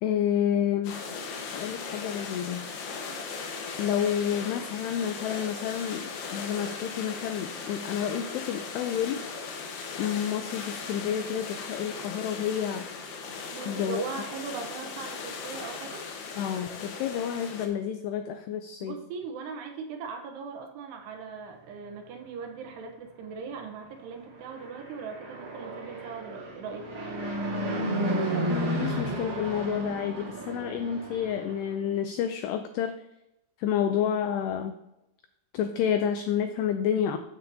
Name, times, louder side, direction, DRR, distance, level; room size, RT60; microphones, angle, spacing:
voice 1, 0.0-1.0 1.5-2.7 3.8-9.2 10.0-12.9 13.7-14.0 16.4-19.0 28.5-32.9 33.6-34.7 35.5-37.2, left 9 dB, 90° left, 8 dB, 2.3 m, -29 dB
sound 1, 0.8-17.7, left 5 dB, 70° left, 2.9 m, -38 dB
voice 2, 13.5-16.1 18.8-26.9, right 5 dB, 75° right, 4 dB, 2.8 m, -39 dB
Fixed-wing aircraft airplane, 24.3-31.7, right 1 dB, 35° right, 3.8 m, -32 dB
13.0 x 8.2 x 2.7 m, 0.89 s
omnidirectional pair, 5.4 m